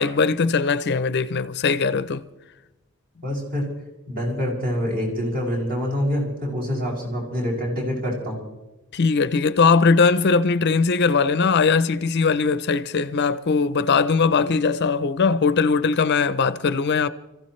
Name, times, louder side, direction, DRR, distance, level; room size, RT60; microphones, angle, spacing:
voice 1, 0.0-2.2 8.9-17.1, left 4 dB, 50° left, 0.5 m, -20 dB
voice 2, 3.2-3.7 4.1-8.4, equal, 45° right, 6.4 m, -26 dB
30.0 x 15.5 x 3.2 m
head